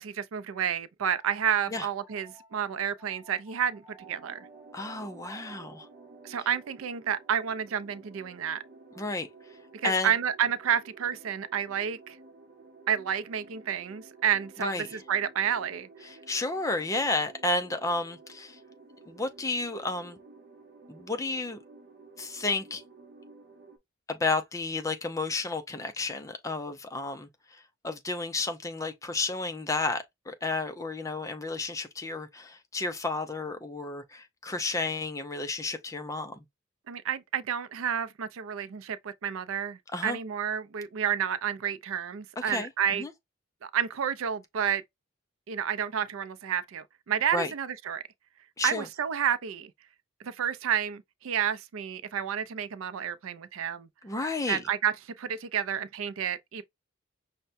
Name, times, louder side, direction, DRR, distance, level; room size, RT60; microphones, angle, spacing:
voice 1, 0.0-4.4 6.2-8.6 9.8-12.2 12.9-15.9 36.9-43.0 43.6-44.8 45.5-48.0 48.6-49.7 50.2-53.9 54.5-56.6, right 8 dB, 80° right, 0.4 m, -30 dB
sound 1, 1.1-10.5, right 2 dB, 5° right, 1.2 m, -57 dB
sound 2, 4.0-23.8, right 3 dB, 45° right, 0.7 m, -53 dB
voice 2, 4.7-5.9 9.0-9.3 9.8-10.1 14.6-14.9 16.0-18.6 19.1-20.2 20.9-21.6 22.2-22.8 24.1-36.4 39.9-40.2 42.4-42.7 43.0-43.1 47.3-47.5 48.6-48.9 54.0-54.6, left 3 dB, 15° left, 0.4 m, -32 dB
5.5 x 2.2 x 2.5 m
head